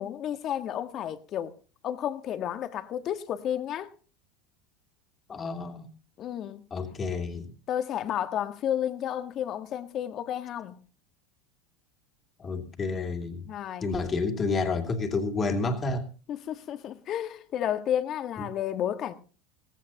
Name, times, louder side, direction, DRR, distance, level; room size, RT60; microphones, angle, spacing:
voice 1, 0.0-1.5 1.8-3.9 6.2-6.7 7.7-10.8 13.5-13.9 16.3-19.1, left 10 dB, 45° left, 1.6 m, -31 dB
voice 2, 5.3-5.9 6.7-7.5 12.4-13.5 13.8-16.1 18.4-18.5, left 3 dB, 30° left, 2.7 m, -30 dB
17.5 x 16.0 x 2.9 m
hypercardioid pair, 85°, 0 cm